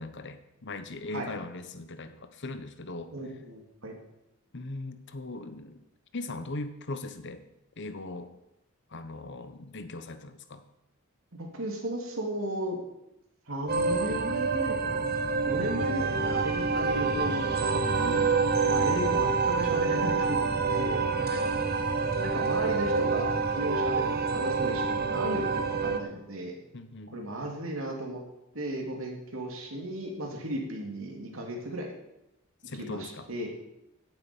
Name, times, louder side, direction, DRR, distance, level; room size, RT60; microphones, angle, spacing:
voice 1, 0.0-3.1 4.5-5.8 6.1-7.4 7.8-8.3 8.9-10.6 15.6-15.7 18.6-18.7 21.2-21.4 26.7-27.1 32.6-33.3, left 2 dB, 60° left, 10 dB, 1.1 m, -39 dB
voice 2, 3.1-3.9 11.3-12.8 13.5-15.1 15.5-18.3 18.7-21.0 22.2-26.5 27.1-28.2 28.5-31.9 32.8-33.5, right 1 dB, 75° right, 1 dB, 3.0 m, -35 dB
sound 1, 13.7-26.0, right 4 dB, 50° right, 1.1 m, -27 dB
16.5 x 7.7 x 5.5 m, 0.86 s
head